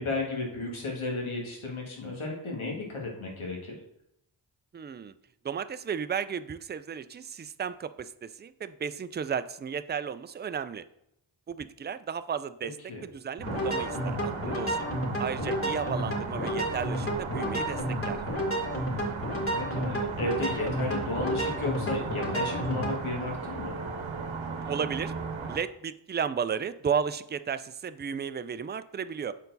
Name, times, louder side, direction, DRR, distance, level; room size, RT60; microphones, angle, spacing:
voice 1, 0.0-3.8 12.6-13.0 19.5-23.7, left 2 dB, 85° left, -1 dB, 1.8 m, -33 dB
voice 2, 4.7-5.1 5.4-10.9 11.5-14.9 15.2-18.2 24.7-25.2 25.5-29.3, right 7 dB, 25° right, 13 dB, 0.4 m, -34 dB
sound 1, 13.4-23.0, equal, 25° left, 2.1 m, -31 dB
sound 2, 13.4-25.6, right 4 dB, 80° right, 0.9 m, -37 dB
7.0 x 4.5 x 3.9 m, 0.77 s
cardioid pair, 40°, 47 cm